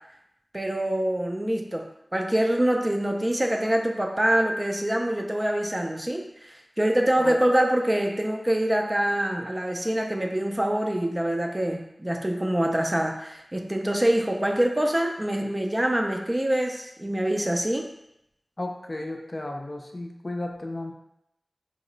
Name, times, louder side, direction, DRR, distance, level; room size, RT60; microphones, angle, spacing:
voice 1, 0.5-17.9, right 1 dB, 20° right, 2 dB, 0.4 m, -25 dB
voice 2, 18.6-20.9, left 1 dB, 45° left, 2 dB, 0.4 m, -34 dB
2.9 x 2.0 x 3.8 m, 0.81 s
wide cardioid pair, 60°, 0 cm